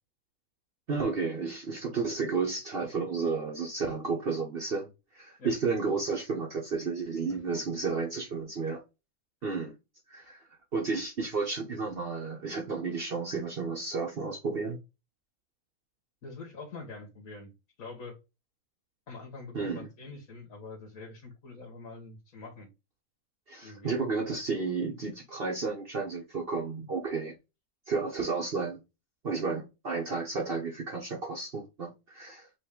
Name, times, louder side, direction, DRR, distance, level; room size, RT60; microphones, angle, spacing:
voice 1, 0.9-4.9 5.1-8.8 9.4-9.7 10.1-14.8 19.5-19.9 23.5-27.3 27.9-28.8 29.2-32.5, right 4 dB, 45° right, 1.0 m, -32 dB
voice 2, 16.2-17.5 17.8-18.2 19.1-22.7 23.6-24.0, left 3 dB, 75° left, 1.7 m, -45 dB
5.3 x 2.6 x 3.6 m
omnidirectional pair, 1.5 m